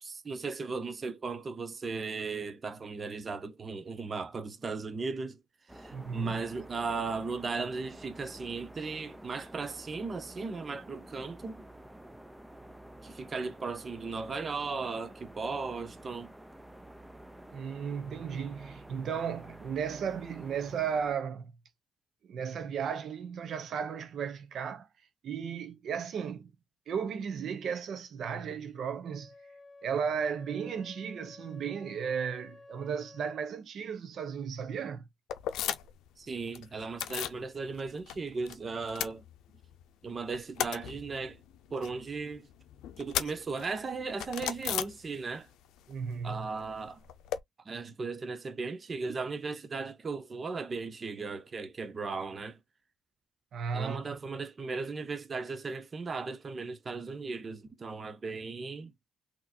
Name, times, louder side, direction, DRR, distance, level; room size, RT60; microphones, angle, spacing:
voice 1, 0.0-5.4 5.7-11.6 13.0-16.3 36.2-39.2 40.0-41.4 41.7-42.5 43.0-45.5 46.2-47.0 47.7-52.6 53.7-58.9, right 4 dB, 35° right, 0.8 m, -37 dB
sound 1, 5.7-21.2, right 1 dB, 5° right, 0.6 m, -50 dB
voice 2, 5.9-6.4 17.5-21.5 22.2-24.9 25.2-26.5 26.9-29.3 29.8-35.1 45.9-46.5 53.5-54.2, right 7 dB, 65° right, 0.8 m, -35 dB
Wind instrument woodwind instrument, 29.1-33.6, left 3 dB, 15° left, 1.1 m, -53 dB
sound 2, 35.3-36.1 36.3-37.4 37.8-38.6 38.8-39.8 40.1-45.5 45.8-47.4, left 11 dB, 90° left, 0.5 m, -37 dB
4.1 x 3.0 x 2.7 m
cardioid pair, 90°, 0 cm